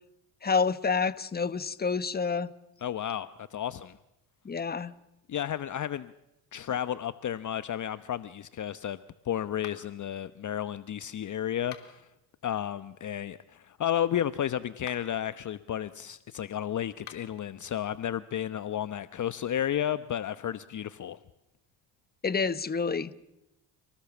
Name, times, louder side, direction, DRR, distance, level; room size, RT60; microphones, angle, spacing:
voice 1, 0.4-2.5 4.4-4.9 22.2-23.1, left 5 dB, 20° left, 15 dB, 1.3 m, -28 dB
voice 2, 2.8-4.0 5.3-6.1 6.5-9.0 9.2-12.1 12.4-21.2, left 10 dB, 40° left, 14 dB, 1.0 m, -32 dB
sound 1, 9.6-10.1 11.6-12.1 14.7-15.2 16.9-17.4, left 10 dB, 60° left, 3.4 m, -48 dB
30.0 x 19.0 x 7.2 m, 0.91 s
supercardioid pair, 80°, 45 cm